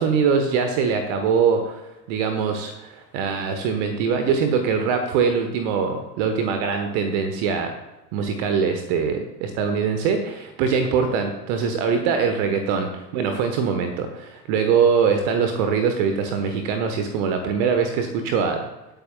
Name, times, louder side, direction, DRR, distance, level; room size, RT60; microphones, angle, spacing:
voice 1, 0.0-1.8 2.1-7.7 8.1-18.6, right 6 dB, 45° right, 6 dB, 1.2 m, -22 dB
18.5 x 9.0 x 2.3 m, 1.0 s
figure-of-eight pair, 80°, 48 cm